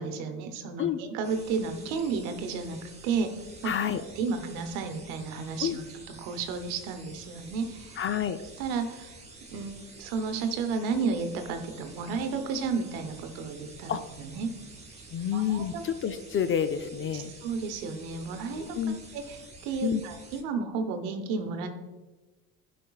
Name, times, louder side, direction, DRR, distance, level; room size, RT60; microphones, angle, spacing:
voice 1, 0.0-3.3 3.6-3.7 4.2-5.8 6.2-8.0 8.6-9.2 9.5-14.5 15.3-15.8 17.1-18.8 19.1-21.7, right 5 dB, 85° right, 7 dB, 0.9 m, -32 dB
sound 1, 1.2-20.4, right 3 dB, 15° right, 2.0 m, -49 dB
voice 2, 3.6-4.0 5.6-5.8 8.0-8.4 13.9-14.0 15.1-17.3 18.6-19.0 19.8-20.0, left 8 dB, 30° left, 10 dB, 0.4 m, -29 dB
11.5 x 5.1 x 2.3 m, 1.2 s
supercardioid pair, 80°, 41 cm